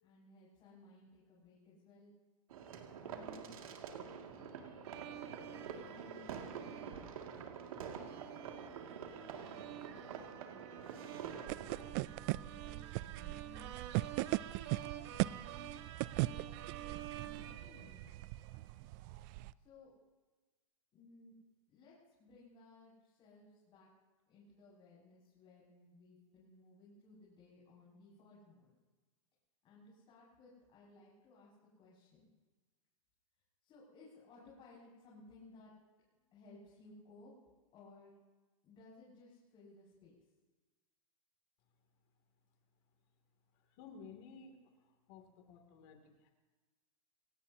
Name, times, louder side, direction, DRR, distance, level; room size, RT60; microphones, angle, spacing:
voice 1, 0.0-2.1 3.0-7.2 8.4-14.1 14.7-15.7 16.0-18.2 19.6-19.9 20.9-21.3 21.7-23.9 24.3-28.7 29.6-31.5 31.8-32.2 33.6-35.7 36.3-37.3 37.7-38.1 38.6-40.1, left 3 dB, 30° left, -8 dB, 6.6 m, -60 dB
sound 1, 2.5-11.8, right 7 dB, 80° right, 2.4 m, -47 dB
sound 2, 4.8-18.5, right 12 dB, 55° right, 1.4 m, -50 dB
sound 3, 11.5-19.5, right 19 dB, 35° right, 0.4 m, -39 dB
voice 2, 43.5-44.6 44.9-46.3, left 5 dB, 45° left, 4 dB, 2.8 m, -55 dB
28.0 x 17.0 x 2.9 m, 1.3 s
hypercardioid pair, 145°, 18 cm